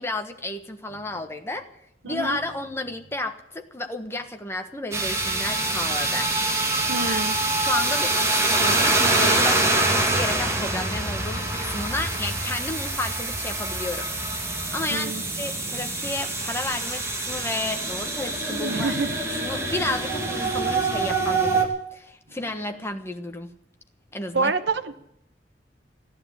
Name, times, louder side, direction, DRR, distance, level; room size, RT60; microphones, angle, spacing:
voice 1, 0.0-1.7 2.0-6.3 7.0-7.2 7.6-15.1 15.4-18.9 19.4-23.5 24.1-24.5, left 2 dB, 15° left, 5 dB, 1.3 m, -32 dB
voice 2, 2.0-2.4 6.9-7.6 14.9-15.2 18.5-19.2 24.3-24.9, right 3 dB, 75° right, 9 dB, 1.2 m, -27 dB
sound 1, 4.9-21.6, right 2 dB, 15° right, 2.2 m, -25 dB
15.0 x 11.0 x 8.6 m, 0.79 s
head